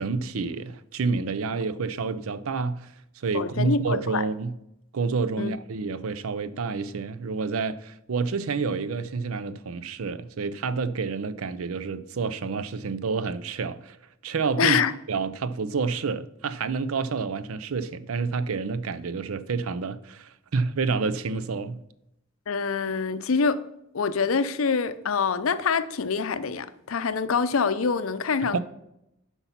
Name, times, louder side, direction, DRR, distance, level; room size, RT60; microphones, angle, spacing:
voice 1, 0.0-4.5 4.9-14.0 14.2-14.8 15.1-21.8 28.5-28.6, right 4 dB, 85° right, 0.5 m, -29 dB
voice 2, 3.3-4.2 5.4-5.5 14.6-14.9 22.5-23.6 23.9-28.6, left 5 dB, 75° left, 0.6 m, -25 dB
8.2 x 5.5 x 5.7 m
head